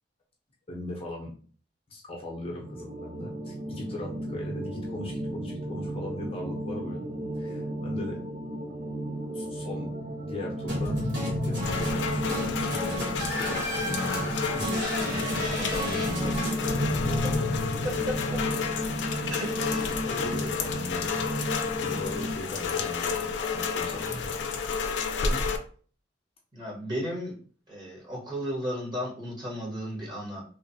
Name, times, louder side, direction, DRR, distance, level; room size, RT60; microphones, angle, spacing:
voice 1, 0.7-1.3 1.9-7.1 7.4-8.2 9.3-9.9 10.2-17.5 20.1-21.2 21.8-24.3 25.2-25.5, left 1 dB, 35° left, -2 dB, 0.6 m, -39 dB
sound 1, 2.6-22.3, right 1 dB, 50° right, 0.4 m, -35 dB
sound 2, 10.7-18.9, equal, 80° right, 1.4 m, -32 dB
Rain, 11.6-25.6, left 5 dB, 85° left, 0.4 m, -31 dB
voice 2, 17.8-18.2 19.3-19.9 26.5-27.3 27.7-30.4, equal, 25° right, -4 dB, 1.2 m, -34 dB
3.0 x 2.1 x 2.6 m, 0.43 s
head